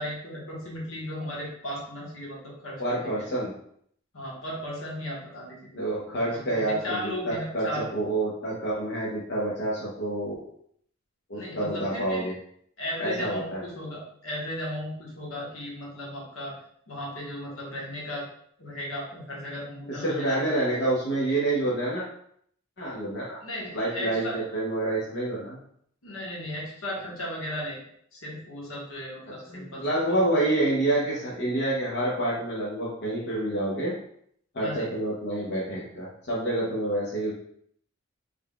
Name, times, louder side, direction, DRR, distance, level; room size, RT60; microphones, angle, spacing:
voice 1, 0.0-3.3 4.1-5.7 6.5-7.9 11.3-12.2 12.8-16.5 16.9-18.2 18.6-20.5 23.4-24.3 26.0-27.8 28.1-30.0 34.6-34.9, left 1 dB, 80° left, -4 dB, 1.3 m, -36 dB
voice 2, 2.8-3.5 5.7-10.4 11.3-12.3 13.0-13.6 19.9-22.0 22.8-23.4 23.7-25.6 29.5-33.9 34.5-37.3, right 1 dB, 55° left, -6 dB, 0.8 m, -28 dB
3.7 x 3.5 x 2.3 m, 0.67 s
head